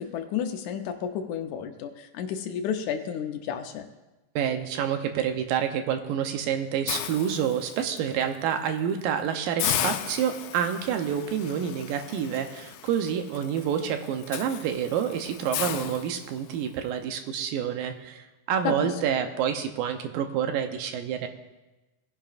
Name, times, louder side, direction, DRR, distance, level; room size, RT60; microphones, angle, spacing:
voice 1, 0.0-3.9 18.6-18.9, left 7 dB, 75° left, 6 dB, 1.9 m, -31 dB
voice 2, 4.4-21.3, right 8 dB, 85° right, 6 dB, 2.6 m, -28 dB
Hiss, 6.9-8.0 8.5-8.7 9.0-9.1 9.6-16.7, left 12 dB, 90° left, 2.3 m, -35 dB
19.0 x 10.5 x 2.5 m, 1.1 s
omnidirectional pair, 3.9 m